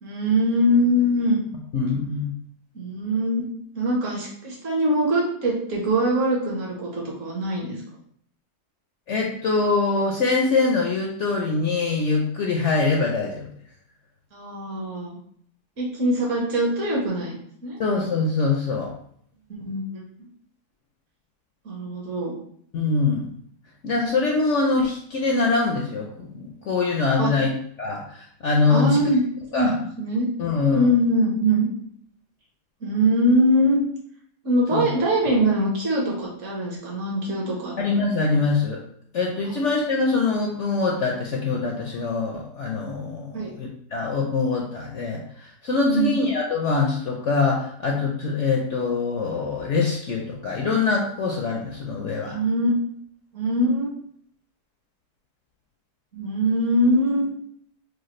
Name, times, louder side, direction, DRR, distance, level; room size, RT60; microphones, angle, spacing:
voice 1, 0.0-1.4 2.7-3.4 3.7-7.8 14.3-15.2 15.8-17.4 17.6-17.8 19.5-19.8 21.6-22.3 27.2-27.3 28.7-29.2 29.5-30.3 30.7-31.7 32.8-33.8 34.4-37.7 39.4-39.5 43.3-43.5 45.8-46.2 52.2-52.7 53.3-53.9 56.1-57.3, equal, 55° right, -3 dB, 1.5 m, -22 dB
voice 2, 1.7-2.3 9.1-13.5 17.8-18.9 22.7-23.3 23.8-27.5 27.8-29.0 29.5-29.7 30.4-30.9 34.7-34.8 37.8-38.8 39.1-52.4, left 4 dB, 65° left, 0 dB, 0.8 m, -23 dB
6.3 x 2.3 x 3.1 m, 0.64 s
omnidirectional pair, 1.7 m